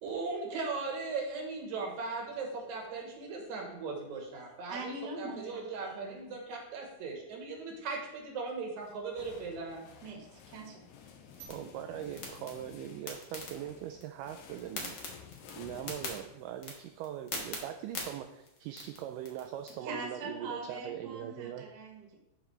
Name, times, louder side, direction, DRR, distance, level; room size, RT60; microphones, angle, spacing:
voice 1, 0.0-9.9, right 4 dB, 65° right, 0 dB, 2.3 m, -38 dB
voice 2, 4.7-6.3 10.0-10.8 11.4-11.5 19.8-22.2, right 2 dB, 40° right, -2 dB, 1.7 m, -43 dB
sound 1, 8.8-16.7, left 7 dB, 80° left, 2.4 m, -53 dB
sound 2, 11.3-19.7, left 3 dB, 60° left, 1.1 m, -45 dB
voice 3, 11.5-15.0 15.5-21.6, right 11 dB, 80° right, 5 dB, 2.0 m, -41 dB
12.5 x 5.0 x 3.3 m, 0.89 s
omnidirectional pair, 4.1 m